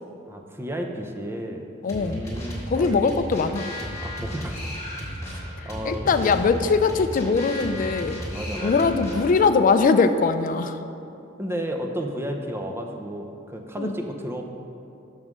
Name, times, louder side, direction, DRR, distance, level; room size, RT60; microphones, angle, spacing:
voice 1, 0.3-1.6 1.9-3.0 4.0-4.7 5.2-6.3 8.3-8.9 11.4-14.4, equal, 15° right, 3 dB, 0.5 m, -32 dB
voice 2, 1.8-2.2 2.7-3.7 5.9-8.2 8.6-10.8 13.8-13.9, left 4 dB, 45° left, 10 dB, 0.3 m, -21 dB
sound 1, 1.9-9.5, equal, 15° left, 1.7 m, -34 dB
6.0 x 5.5 x 6.3 m, 2.7 s
head